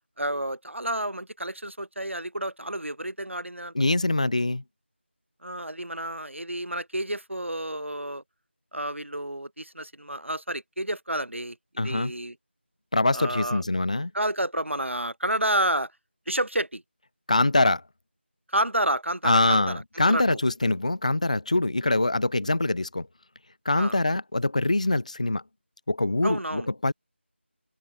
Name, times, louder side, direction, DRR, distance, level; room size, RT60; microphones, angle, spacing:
voice 1, 0.2-3.7 5.4-8.2 8.7-12.3 13.1-13.6 14.1-15.9 16.3-16.8 18.5-19.8 20.1-20.4 23.8-24.0 26.2-26.7, right 1 dB, 90° right, 0.8 m, -30 dB
voice 2, 3.7-4.6 11.8-12.1 12.9-14.1 17.3-17.8 19.2-23.1 23.7-25.4 25.9-26.9, left 2 dB, 35° left, 0.5 m, -24 dB
figure-of-eight pair, 170°, 7 cm